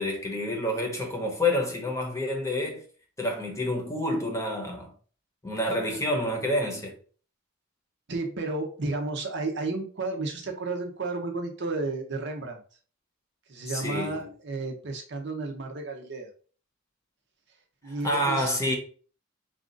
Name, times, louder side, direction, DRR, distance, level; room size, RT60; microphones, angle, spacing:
voice 1, 0.0-2.8 3.2-4.9 5.4-6.9 13.7-14.2 17.8-18.8, left 1 dB, 15° left, 0.9 m, -28 dB
voice 2, 8.1-12.6 13.5-16.3 17.8-18.5, right 3 dB, 60° right, 0.8 m, -32 dB
4.2 x 2.5 x 3.8 m
head